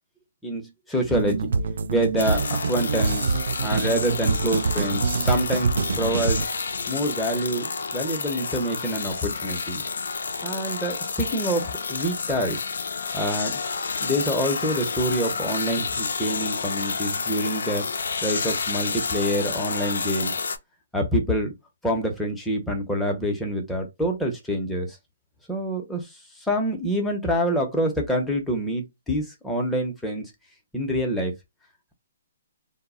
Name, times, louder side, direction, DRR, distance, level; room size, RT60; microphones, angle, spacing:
voice 1, 0.4-1.4 1.9-5.7 6.0-6.4 6.9-9.8 10.4-12.6 13.1-13.6 14.0-17.8 18.2-20.3 20.9-21.5 21.8-25.0 25.5-26.1 26.5-30.3 30.7-31.3, equal, 5° left, 0.6 m, -26 dB
sound 1, 1.1-6.5, right 4 dB, 70° right, 0.3 m, -25 dB
sound 2, 2.2-20.6, left 5 dB, 80° left, 0.3 m, -30 dB
2.1 x 2.0 x 3.5 m
hypercardioid pair, 150°, 0 cm